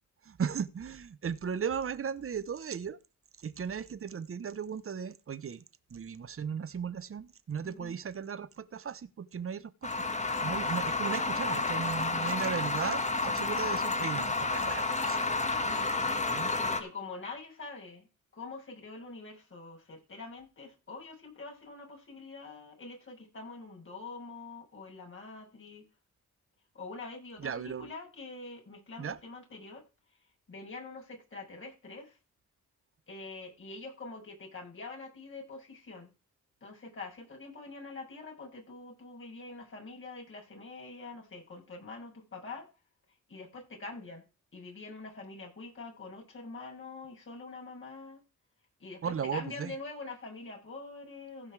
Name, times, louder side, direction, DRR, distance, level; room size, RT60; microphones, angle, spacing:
voice 1, 0.2-3.0 3.4-5.6 5.9-9.9 10.4-15.2 15.6-16.5 27.4-27.9 29.0-29.2 49.0-49.7, right 7 dB, 45° right, 1.0 m, -36 dB
voice 2, 7.6-8.0 11.2-11.8 15.6-15.9 16.6-18.1 18.3-25.9 26.7-29.8 30.5-32.2 33.1-36.1 36.6-42.7 43.3-44.2 44.5-48.2 48.8-51.5, left 3 dB, 40° left, 7.1 m, -45 dB
sound 1, 9.8-16.8, left 3 dB, 25° left, 1.9 m, -30 dB
16.0 x 5.4 x 4.9 m
cardioid pair, 80°, 30 cm